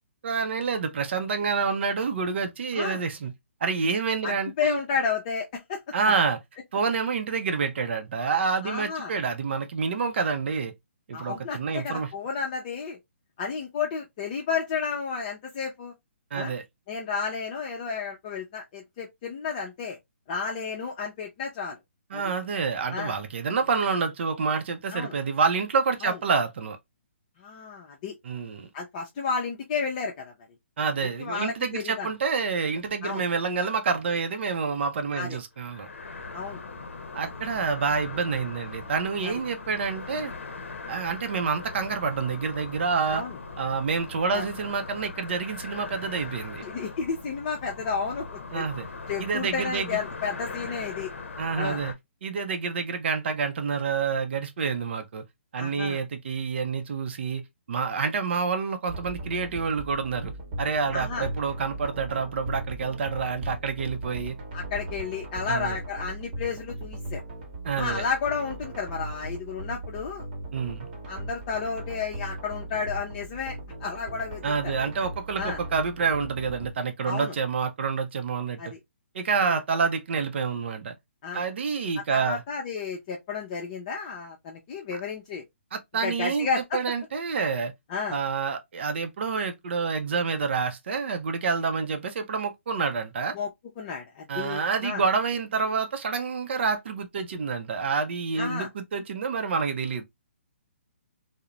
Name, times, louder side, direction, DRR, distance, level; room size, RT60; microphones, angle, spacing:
voice 1, 0.2-3.3 3.6-4.8 5.9-6.4 6.7-10.7 11.1-12.1 16.3-16.6 22.1-26.8 28.2-28.7 30.8-35.9 37.1-40.3 40.9-43.2 43.6-46.6 48.5-48.9 49.2-50.0 51.4-51.9 52.2-55.2 55.5-57.4 57.7-60.3 60.6-64.4 65.5-65.8 67.6-68.1 70.5-70.9 74.4-78.7 79.1-80.9 81.3-82.4 85.7-86.5 86.7-87.7 88.1-93.3 94.3-100.0, right 5 dB, 60° right, 0.5 m, -28 dB
voice 2, 4.2-5.8 8.6-9.1 11.1-13.0 13.4-15.9 16.3-16.5 16.9-20.0 20.3-21.8 22.1-22.2 22.9-23.2 24.9-25.1 26.0-26.2 27.4-28.1 28.7-30.3 31.0-32.1 33.0-33.2 35.2-35.4 36.3-36.6 37.2-37.3 39.2-39.3 43.1-43.4 44.3-44.4 46.6-48.2 48.5-48.6 49.1-51.1 51.6-51.8 55.6-56.0 60.9-61.3 64.5-67.2 67.8-70.3 71.1-74.7 75.4-75.6 77.0-77.3 78.6-78.8 79.4-79.6 81.2-81.4 82.1-85.4 86.0-86.8 87.9-88.2 93.3-93.5 93.8-95.0 98.4-98.7, left 5 dB, 35° left, 0.5 m, -32 dB
sound 1, 35.6-51.9, left 4 dB, 80° left, 0.6 m, -40 dB
sound 2, 58.9-76.7, right 1 dB, 40° right, 1.0 m, -38 dB
2.4 x 2.0 x 2.9 m
hypercardioid pair, 145°, 7 cm